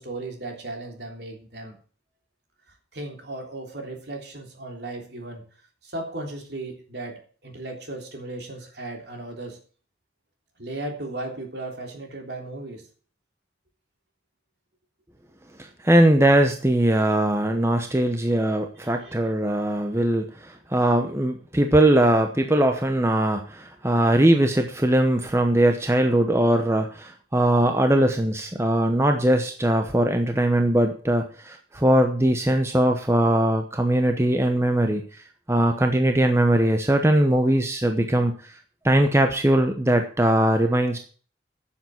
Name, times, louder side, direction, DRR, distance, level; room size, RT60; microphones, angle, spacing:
voice 1, 0.0-1.8 2.7-5.4 5.8-9.6 10.6-12.9 18.8-19.2, right 2 dB, 60° right, 2 dB, 3.5 m, -36 dB
voice 2, 15.8-35.1 35.5-38.3 38.8-41.0, right 1 dB, 15° right, 5 dB, 0.9 m, -20 dB
10.0 x 7.3 x 7.8 m, 0.42 s
head